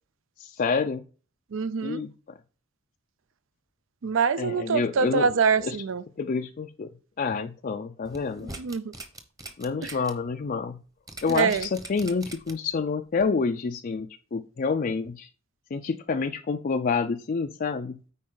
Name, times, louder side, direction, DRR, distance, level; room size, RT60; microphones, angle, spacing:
voice 1, 0.4-1.0 1.8-2.4 4.4-5.3 5.6-5.8 6.2-6.9 7.2-8.6 9.6-10.8 11.2-15.3 15.7-18.0, left 4 dB, 40° left, 0.4 m, -28 dB
voice 2, 1.5-2.0 4.0-6.0 8.6-8.9 9.8-9.9 11.3-11.7, right 5 dB, 60° right, 0.4 m, -25 dB
sound 1, 8.0-10.1 10.5-10.6 11.1-12.7 13.2-13.3, right 2 dB, 15° right, 1.0 m, -41 dB
9.4 x 4.3 x 3.8 m
head